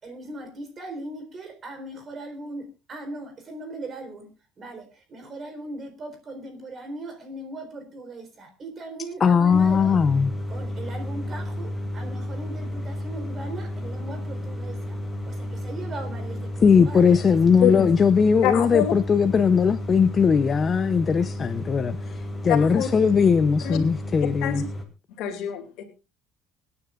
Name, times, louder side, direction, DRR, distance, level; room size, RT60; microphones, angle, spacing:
voice 1, 0.0-4.3 4.6-10.0 10.5-15.0 15.3-17.9, right 2 dB, 30° right, 4.0 m, -39 dB
voice 2, 9.2-10.3 16.6-24.6, left 6 dB, 25° left, 0.7 m, -19 dB
sound 1, 9.5-24.8, left 1 dB, 5° left, 2.6 m, -32 dB
voice 3, 18.4-18.9 22.5-22.9 23.6-23.8 24.4-24.6 25.1-25.8, left 11 dB, 65° left, 2.5 m, -25 dB
26.0 x 9.7 x 2.5 m
cardioid pair, 155°, 0 cm